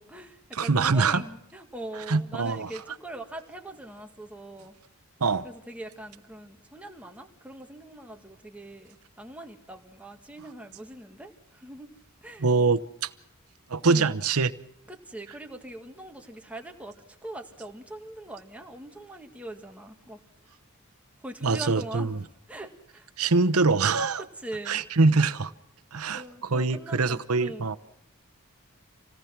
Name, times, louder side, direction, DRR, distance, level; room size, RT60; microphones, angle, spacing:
voice 1, 0.0-4.7 5.4-11.9 12.2-12.5 13.8-14.1 14.9-17.0 17.2-20.2 21.2-22.2 22.5-23.1 24.2-24.8 26.1-27.7, right 1 dB, 5° right, 1.9 m, -42 dB
voice 2, 0.5-1.2 2.1-2.7 5.2-5.5 12.4-13.1 13.7-14.5 21.4-22.2 23.2-24.2 24.7-25.5 25.9-26.2 26.5-27.8, right 4 dB, 85° right, 0.9 m, -24 dB
27.0 x 18.0 x 6.0 m
head